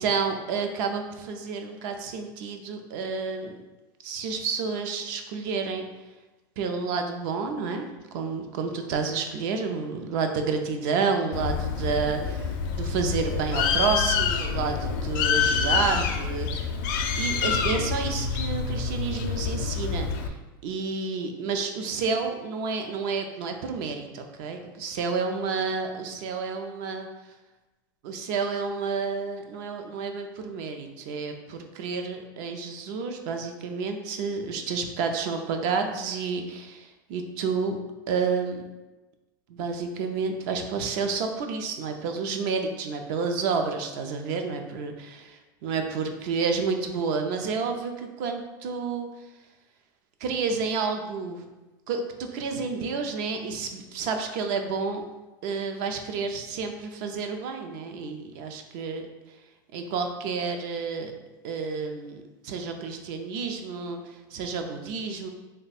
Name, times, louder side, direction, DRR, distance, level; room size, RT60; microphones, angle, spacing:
voice 1, 0.0-3.6 4.0-5.9 6.6-7.9 8.1-16.8 17.2-20.4 20.6-27.1 28.0-37.8 38.1-38.6 39.5-49.1 50.2-51.5 51.9-55.0 55.4-59.1 59.7-61.1 61.4-65.3, right 5 dB, 55° right, 5 dB, 0.5 m, -30 dB
Bird, 11.3-20.3, left 6 dB, 60° left, 0.4 m, -27 dB
3.5 x 2.2 x 4.0 m, 1.1 s
supercardioid pair, 145°, 12 cm